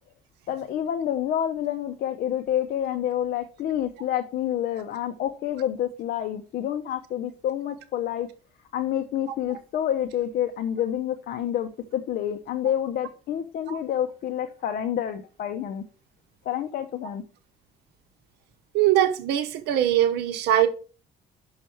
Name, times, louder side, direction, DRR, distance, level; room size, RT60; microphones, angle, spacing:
voice 1, 0.5-8.3 8.7-15.8 16.4-17.2, left 10 dB, 65° left, 0.7 m, -28 dB
voice 2, 18.7-20.7, right 12 dB, 80° right, 1.0 m, -22 dB
5.9 x 5.6 x 4.7 m
cardioid pair, 110°, 17 cm